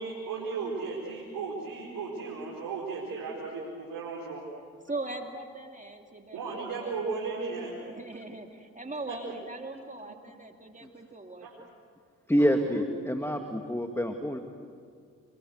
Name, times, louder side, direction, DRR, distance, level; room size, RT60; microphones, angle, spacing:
voice 1, 0.0-4.4 6.3-7.7 9.1-9.2 11.4-11.5 12.4-12.9 13.6-13.7, right 4 dB, 80° right, -4 dB, 4.7 m, -35 dB
voice 2, 4.8-7.0 7.9-11.7, right 2 dB, 20° right, 3 dB, 2.5 m, -40 dB
voice 3, 12.3-14.4, equal, 5° left, 5 dB, 2.2 m, -27 dB
28.5 x 22.5 x 8.0 m, 2.1 s
supercardioid pair, 45°, 35 cm